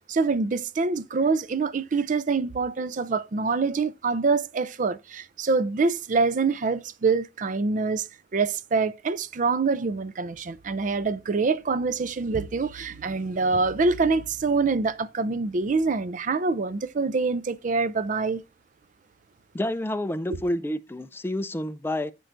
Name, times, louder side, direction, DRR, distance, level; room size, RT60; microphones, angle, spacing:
voice 1, 0.1-8.1 8.3-18.4 20.3-20.4, right 4 dB, 45° right, 0.4 m, -25 dB
voice 2, 19.5-22.1, left 1 dB, 15° left, 0.4 m, -29 dB
13.5 x 4.5 x 2.5 m
head